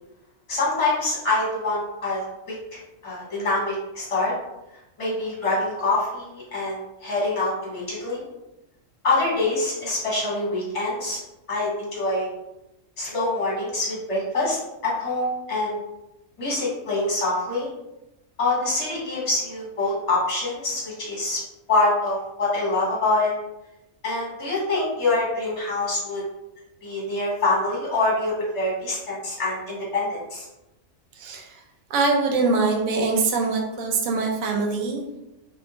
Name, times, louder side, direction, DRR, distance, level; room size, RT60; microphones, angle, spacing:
voice 1, 0.5-2.2 3.0-4.3 5.0-8.2 9.0-11.2 11.5-12.3 13.0-15.8 16.4-17.7 18.4-21.4 21.7-23.3 24.0-26.2 26.8-30.4, left 2 dB, 25° left, -6 dB, 1.0 m, -25 dB
voice 2, 31.2-31.5 31.9-35.0, right 3 dB, 90° right, 1 dB, 1.0 m, -23 dB
2.7 x 2.3 x 2.7 m, 0.92 s
omnidirectional pair, 1.4 m